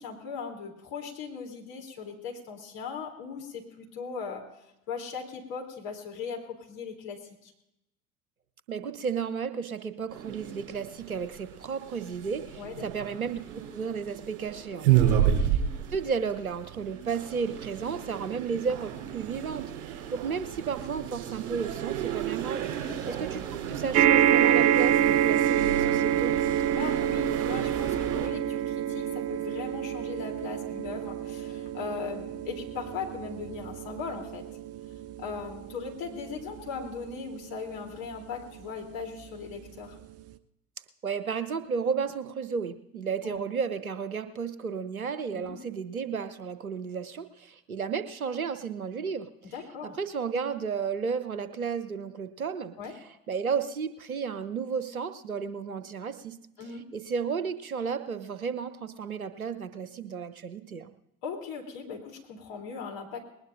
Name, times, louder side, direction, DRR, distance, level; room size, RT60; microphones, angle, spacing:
voice 1, 0.0-4.5 4.9-7.5 12.5-12.9 15.1-15.4 22.9-23.2 26.7-34.4 35.2-39.9 43.2-43.4 45.3-45.6 49.5-49.9 52.8-53.0 56.6-56.9 61.2-63.2, left 5 dB, 60° left, 1 dB, 3.4 m, -39 dB
voice 2, 8.7-13.4 13.7-15.6 15.9-22.7 23.1-23.4 23.7-26.3 41.0-49.5 50.0-52.8 53.3-56.4 56.9-60.9, right 6 dB, 90° right, 12 dB, 0.8 m, -33 dB
sound 1, 10.1-28.3, right 10 dB, 65° right, 4.0 m, -32 dB
sound 2, 23.9-38.5 39.2-39.3 39.6-39.7, right 10 dB, 35° right, 0.7 m, -27 dB
20.5 x 19.0 x 2.6 m, 0.84 s
figure-of-eight pair, 60°, 41 cm